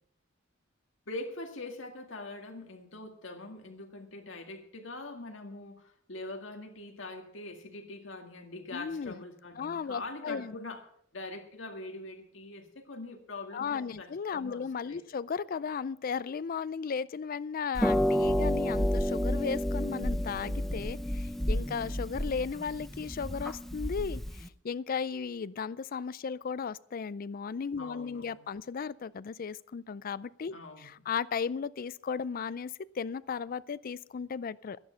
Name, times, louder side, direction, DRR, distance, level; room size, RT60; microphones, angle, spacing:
voice 1, 1.1-10.8 11.1-15.0 27.8-28.5 30.5-31.1, left 2 dB, 70° left, 4 dB, 2.0 m, -43 dB
voice 2, 8.7-9.2 9.6-10.6 13.5-34.8, left 6 dB, 45° left, 18 dB, 0.4 m, -35 dB
Harp, 17.7-24.5, equal, ahead, 0.6 m, -30 dB
12.0 x 10.5 x 5.7 m, 0.67 s
head